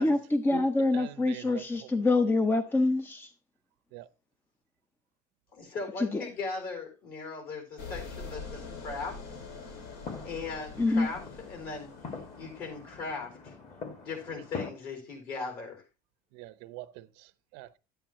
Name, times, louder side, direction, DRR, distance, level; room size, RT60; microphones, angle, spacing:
voice 1, 0.0-3.3 6.0-6.2 10.8-11.1, left 2 dB, 10° left, 0.5 m, -26 dB
voice 2, 0.9-2.3 3.9-4.1 16.3-17.8, right 16 dB, 75° right, 0.7 m, -44 dB
voice 3, 5.5-9.2 10.2-11.9 12.4-13.5 14.0-15.8, left 4 dB, 50° left, 4.2 m, -38 dB
sound 1, 7.8-13.1, left 4 dB, 75° left, 2.6 m, -44 dB
sound 2, 8.4-14.7, left 4 dB, 35° left, 2.1 m, -45 dB
11.0 x 9.0 x 3.0 m
cardioid pair, 135°, 19 cm